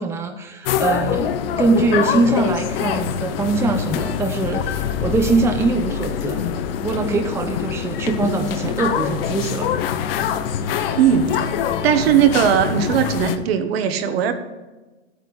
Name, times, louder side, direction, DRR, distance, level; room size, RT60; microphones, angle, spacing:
voice 1, 0.0-6.4 6.8-9.7 10.6-11.0, right 3 dB, 10° right, 5 dB, 0.7 m, -22 dB
sound 1, 0.6-13.4, left 9 dB, 60° left, 1.0 m, -24 dB
voice 2, 10.9-11.5 11.8-14.3, right 8 dB, 65° right, 7 dB, 1.4 m, -18 dB
12.5 x 8.6 x 4.1 m, 1.2 s
hypercardioid pair, 125°, 33 cm